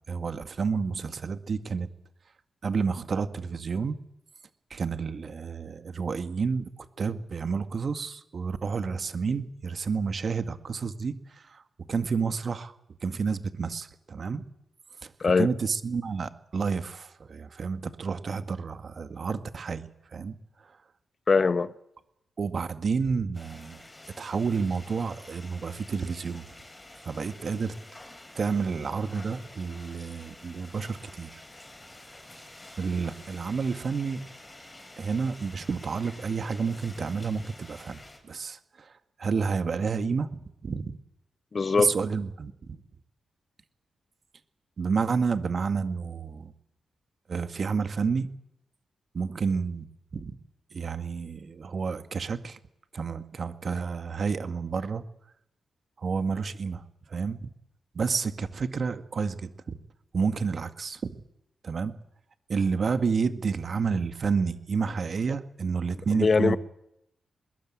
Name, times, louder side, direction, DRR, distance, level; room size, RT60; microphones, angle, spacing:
voice 1, 0.1-1.9 2.6-4.0 4.7-6.7 7.0-11.6 11.9-12.7 13.0-14.5 15.0-15.1 15.4-20.4 22.4-23.8 24.2-26.5 27.0-27.7 28.4-31.4 32.8-34.2 35.0-38.0 38.2-38.9 39.2-41.0 41.8-42.8 44.8-46.5 47.3-48.3 49.1-49.9 50.1-50.3 50.7-52.6 52.9-55.0 56.0-56.8 57.1-57.5 58.0-59.8 60.1-61.2 61.6-61.9 62.5-66.6, right 5 dB, 60° right, 2.1 m, -30 dB
voice 2, 21.3-21.7 41.5-41.9 66.1-66.6, left 4 dB, 50° left, 1.1 m, -22 dB
sound 1, 23.3-38.2, left 1 dB, 20° left, 7.8 m, -49 dB
24.0 x 21.5 x 8.9 m
supercardioid pair, 50°, 0 cm